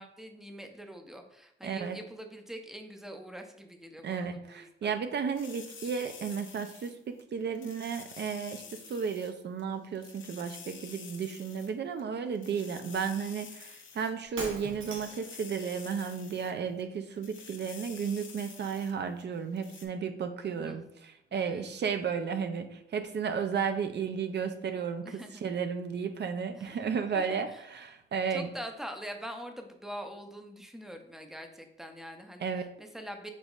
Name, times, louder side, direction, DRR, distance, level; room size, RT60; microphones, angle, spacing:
voice 1, 0.0-4.9 20.5-20.8 21.3-21.6 25.0-25.4 26.5-26.8 27.1-27.6 28.3-33.3, equal, ahead, 5 dB, 0.5 m, -44 dB
voice 2, 1.6-2.0 4.0-28.5 32.4-32.7, right 6 dB, 60° right, 8 dB, 0.4 m, -33 dB
sound 1, 5.3-7.2 7.5-9.3 9.6-9.7 9.9-11.7 12.0-12.1 12.3-14.4 14.7-16.5 16.8-16.9 17.2-18.9 19.2-19.3 19.6-19.9, left 6 dB, 75° left, 0.6 m, -49 dB
Shatter, 14.2-15.3, right 3 dB, 80° right, 1.0 m, -40 dB
5.3 x 3.9 x 2.4 m, 0.78 s
wide cardioid pair, 115°, 20 cm